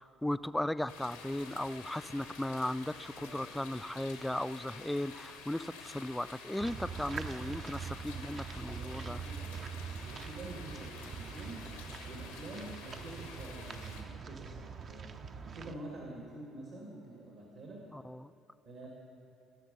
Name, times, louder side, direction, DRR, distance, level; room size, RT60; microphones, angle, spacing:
voice 1, 0.0-9.2 17.9-18.3, left 1 dB, 5° left, 15 dB, 0.3 m, -36 dB
sound 1, 0.9-14.0, left 5 dB, 90° left, 1.0 m, -50 dB
sound 2, 6.6-15.7, right 6 dB, 45° right, 0.5 m, -43 dB
voice 2, 8.7-9.6 9.9-11.6 12.1-15.1 15.4-17.8 18.7-18.9, right 2 dB, 65° right, -2 dB, 1.8 m, -47 dB
16.0 x 6.6 x 5.4 m, 2.6 s
hypercardioid pair, 55°, 0 cm